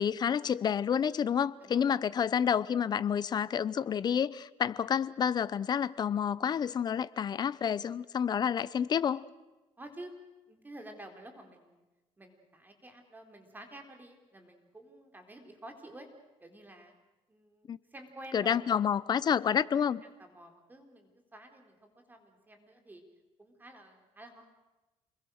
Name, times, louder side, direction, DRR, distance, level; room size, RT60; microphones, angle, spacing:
voice 1, 0.0-9.2 17.7-17.8 18.3-20.0, left 8 dB, 40° left, 18 dB, 0.8 m, -29 dB
voice 2, 9.8-10.1 10.5-11.9 12.2-16.1 16.4-16.9 17.3-18.9 19.3-19.6 20.0-23.0 23.4-24.5, right 1 dB, 15° right, 4 dB, 4.2 m, -50 dB
28.0 x 22.0 x 6.5 m, 1.1 s
cardioid pair, 105°, 11 cm